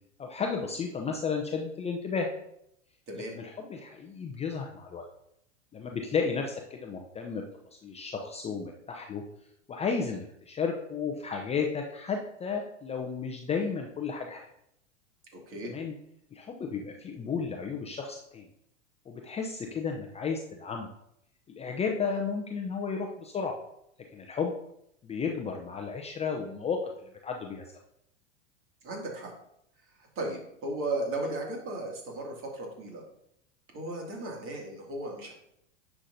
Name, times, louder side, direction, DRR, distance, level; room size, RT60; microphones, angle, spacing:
voice 1, 0.2-2.3 3.1-5.1 5.7-7.4 7.8-9.2 9.7-14.5 15.6-15.9 16.3-18.5 19.1-20.9 21.5-23.6 24.1-24.5 25.0-26.8 27.2-27.8, left 5 dB, 15° left, 2 dB, 0.6 m, -33 dB
voice 2, 15.3-15.7 28.8-29.3 30.0-33.0 33.7-35.3, right 2 dB, 35° right, 0 dB, 2.4 m, -35 dB
9.8 x 5.9 x 2.7 m, 0.76 s
hypercardioid pair, 105°, 37 cm